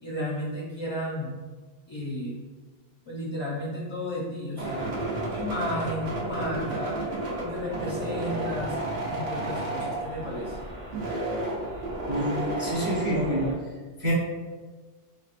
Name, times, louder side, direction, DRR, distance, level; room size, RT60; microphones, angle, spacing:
voice 1, 0.0-1.3 1.9-2.4 3.1-4.9 5.3-8.8 9.1-10.6, equal, 35° left, -4 dB, 0.5 m, -33 dB
sound 1, 4.6-13.5, right 1 dB, 75° right, 1.0 m, -32 dB
voice 2, 12.1-13.5 14.0-14.1, equal, 25° right, -7 dB, 0.7 m, -27 dB
3.5 x 3.3 x 2.4 m, 1.3 s
omnidirectional pair, 1.0 m